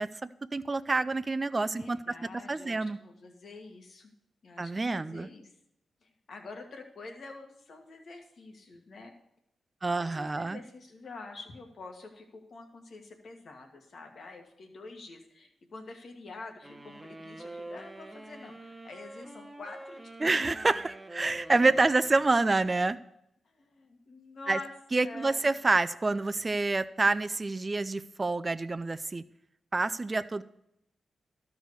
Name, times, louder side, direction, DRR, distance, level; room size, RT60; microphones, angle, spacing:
voice 1, 0.0-2.0 2.5-3.0 4.6-5.3 9.8-10.6 20.2-23.0 24.5-24.6 24.9-29.2 29.7-30.4, right 3 dB, 35° right, 12 dB, 0.4 m, -27 dB
voice 2, 1.5-4.1 4.4-5.5 6.0-9.1 9.8-20.3 23.4-24.7 25.0-25.5, left 3 dB, 65° left, 3 dB, 1.7 m, -47 dB
sound 1, 16.6-23.0, right 2 dB, 15° right, 1.0 m, -46 dB
12.5 x 4.7 x 6.7 m, 0.79 s
supercardioid pair, 50°, 0 cm